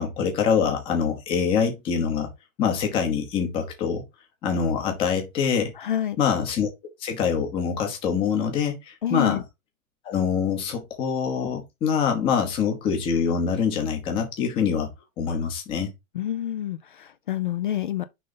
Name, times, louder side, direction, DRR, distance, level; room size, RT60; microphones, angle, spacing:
voice 1, 0.0-2.3 2.6-4.0 4.4-5.7 6.2-6.7 7.0-9.4 10.0-14.9 15.2-15.9, left 6 dB, 15° left, 1.0 m, -24 dB
voice 2, 5.8-6.2 9.0-9.4 16.1-18.0, left 11 dB, 40° left, 0.5 m, -28 dB
5.5 x 3.9 x 5.2 m
hypercardioid pair, 175°, 41 cm